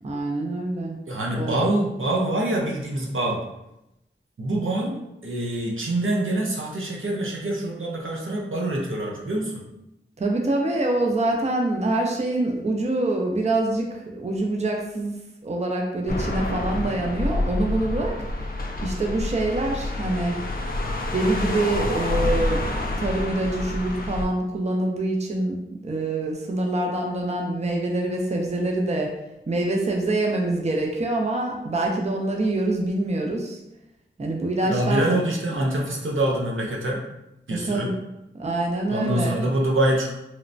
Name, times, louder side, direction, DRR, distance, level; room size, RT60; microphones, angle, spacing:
voice 1, 0.0-1.0 1.3-1.6 10.2-15.1 15.4-18.2 18.8-20.4 21.1-22.6 23.0-29.2 29.5-33.6 34.2-35.2 37.5-38.0 38.3-39.4, right 2 dB, 35° right, 0 dB, 0.5 m, -25 dB
voice 2, 1.1-3.4 4.4-5.0 5.2-9.6 34.7-37.0 37.5-37.9 38.9-40.1, right 1 dB, 75° right, -2 dB, 0.6 m, -25 dB
sound 1, 16.1-24.2, left 2 dB, 45° left, 0.4 m, -28 dB
3.0 x 2.1 x 2.5 m, 0.87 s
wide cardioid pair, 45°, 20 cm